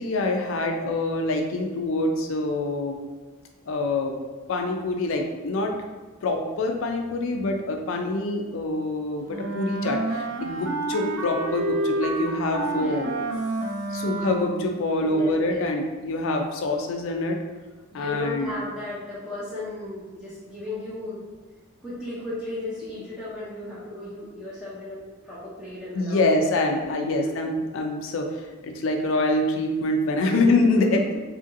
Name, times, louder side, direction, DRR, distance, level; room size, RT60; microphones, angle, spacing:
voice 1, 0.0-2.9 3.7-4.2 4.5-5.7 6.2-13.1 13.9-17.4 17.9-18.5 25.9-31.0, left 2 dB, 65° left, 3 dB, 0.4 m, -25 dB
Wind instrument woodwind instrument, 9.3-14.7, right 2 dB, 80° right, 0.4 m, -29 dB
voice 2, 12.3-13.0 13.5-14.0 15.0-15.7 17.9-21.2 21.8-26.4 26.7-27.2 30.2-30.4, left 2 dB, 5° right, -10 dB, 0.5 m, -35 dB
2.8 x 2.6 x 2.6 m, 1.4 s
head